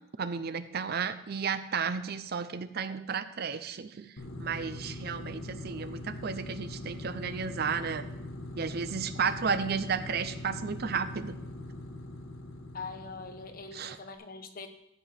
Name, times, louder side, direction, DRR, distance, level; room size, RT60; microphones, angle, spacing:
voice 1, 0.2-4.1 4.4-8.0 8.6-11.4 13.7-14.0, right 6 dB, 50° right, 12 dB, 0.5 m, -33 dB
sound 1, 4.2-14.0, left 1 dB, 90° left, 1.3 m, -42 dB
voice 2, 12.7-14.7, left 4 dB, 45° left, 7 dB, 1.0 m, -42 dB
13.5 x 5.2 x 5.8 m, 0.85 s
head